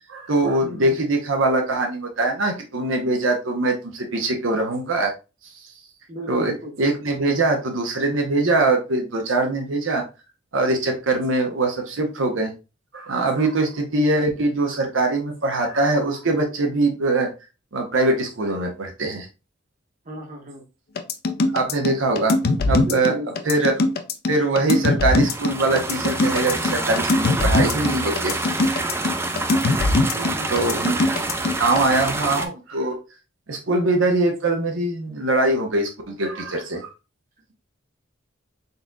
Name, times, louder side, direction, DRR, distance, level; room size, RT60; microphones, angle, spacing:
voice 1, 0.1-5.1 5.4-5.6 6.3-6.5 6.8-10.0 10.5-12.5 12.9-17.3 17.7-19.3 21.5-22.4 22.6-23.1 23.4-23.7 24.3-28.4 30.4-33.0 33.5-36.9, right 2 dB, 80° right, 2 dB, 0.8 m, -22 dB
voice 2, 0.6-1.0 6.1-6.7 20.0-20.6 22.8-23.4 30.1-30.7, left 1 dB, 40° right, 1 dB, 1.0 m, -35 dB
sound 1, 21.0-31.8, left 2 dB, 50° left, 0.4 m, -21 dB
sound 2, 25.1-32.5, right 2 dB, 10° right, 0.3 m, -27 dB
4.1 x 3.8 x 2.3 m, 0.29 s
head